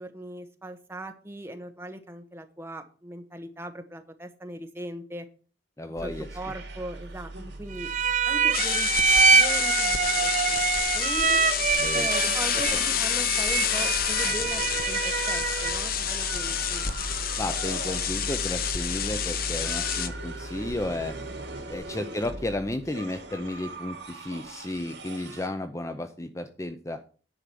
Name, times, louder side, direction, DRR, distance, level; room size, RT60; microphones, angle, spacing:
voice 1, 0.0-5.3 6.0-7.3 7.6-7.9 8.2-8.9 9.3-11.4 11.9-16.8 22.1-22.2, right 1 dB, 15° right, 6 dB, 1.1 m, -39 dB
voice 2, 5.8-6.3 11.8-12.1 17.4-21.1 21.7-27.0, left 1 dB, 15° left, 8 dB, 0.5 m, -33 dB
sound 1, 6.0-25.5, right 2 dB, 75° right, 2.8 m, -38 dB
sound 2, 7.8-15.9, right 5 dB, 40° right, 0.5 m, -25 dB
sound 3, 8.5-20.1, left 9 dB, 50° left, 0.8 m, -28 dB
10.0 x 5.0 x 7.6 m, 0.39 s
head